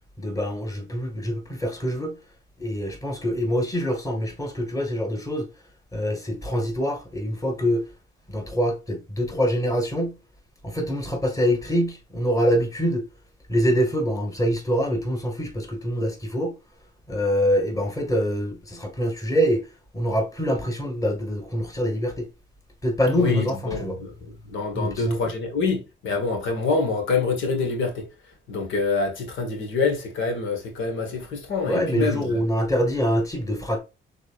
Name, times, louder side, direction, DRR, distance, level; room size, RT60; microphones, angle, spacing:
voice 1, 0.2-2.2 2.6-5.5 5.9-7.8 8.3-10.2 10.6-13.0 13.5-16.6 17.1-19.6 19.9-22.3 22.8-24.0 24.7-25.2 31.7-33.8, equal, 15° left, 1.9 m, -25 dB
voice 2, 23.1-28.1 28.5-32.4, left 4 dB, 80° left, 1.5 m, -26 dB
6.1 x 3.6 x 2.4 m
cardioid pair, 90°, 20 cm